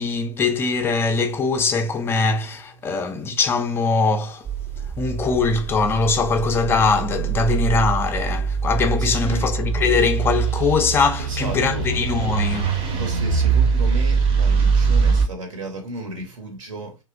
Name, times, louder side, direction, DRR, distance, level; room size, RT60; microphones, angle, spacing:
voice 1, 0.0-4.5 4.8-12.7, left 4 dB, 15° left, 0.4 m, -22 dB
sound 1, 4.5-15.3, right 5 dB, 35° right, 0.6 m, -22 dB
voice 2, 9.0-9.5 11.2-11.8 12.8-17.0, right 1 dB, 70° right, 0.8 m, -34 dB
2.7 x 2.1 x 2.4 m
figure-of-eight pair, 95°, 17 cm